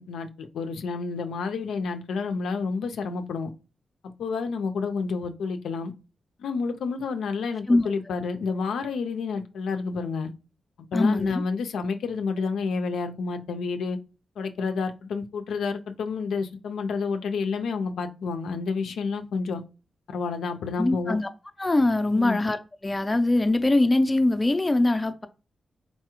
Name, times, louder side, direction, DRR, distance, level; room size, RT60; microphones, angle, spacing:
voice 1, 0.0-3.5 4.2-5.9 6.4-10.3 10.9-14.0 14.4-19.6 20.1-21.2 22.1-22.4, left 4 dB, 85° left, 0.4 m, -29 dB
voice 2, 10.9-11.4 20.8-21.3 21.6-22.6 22.8-25.3, left 2 dB, 20° left, 0.4 m, -22 dB
4.0 x 2.3 x 3.0 m
cardioid pair, 70°, 0 cm